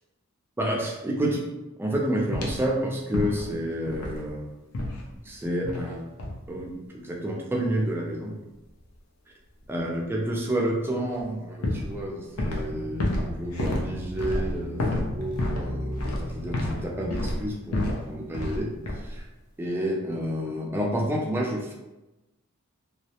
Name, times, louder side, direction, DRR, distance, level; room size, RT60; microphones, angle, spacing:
voice 1, 0.6-1.5 1.8-4.5 5.2-6.0 6.5-8.3 9.7-19.3 19.6-21.7, right 1 dB, 10° right, -1 dB, 0.3 m, -30 dB
sound 1, 2.3-2.7 3.1-3.5 3.9-4.3 4.7-5.0 5.6-5.9 6.2-6.4 11.1-11.2 11.6-12.7 13.0-16.8 17.1-18.0 18.3-18.6 18.9-19.2, left 1 dB, 90° left, 0.5 m, -29 dB
sound 2, 12.7-17.2, equal, 15° left, 0.9 m, -36 dB
2.3 x 2.0 x 2.8 m, 1.0 s
head